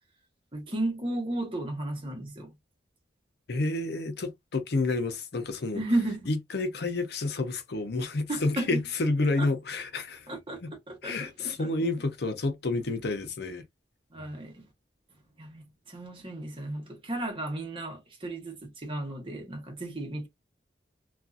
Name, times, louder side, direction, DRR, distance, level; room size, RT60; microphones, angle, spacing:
voice 1, 0.5-2.5 5.7-6.3 8.3-8.8 9.4-9.5 10.3-10.6 10.9-11.7 14.1-14.7 15.4-15.6 15.9-20.3, right 1 dB, 30° right, 1.0 m, -33 dB
voice 2, 3.5-5.8 6.3-10.3 10.6-10.7 11.0-13.6, left 2 dB, 65° left, 0.6 m, -29 dB
2.6 x 2.4 x 2.3 m
head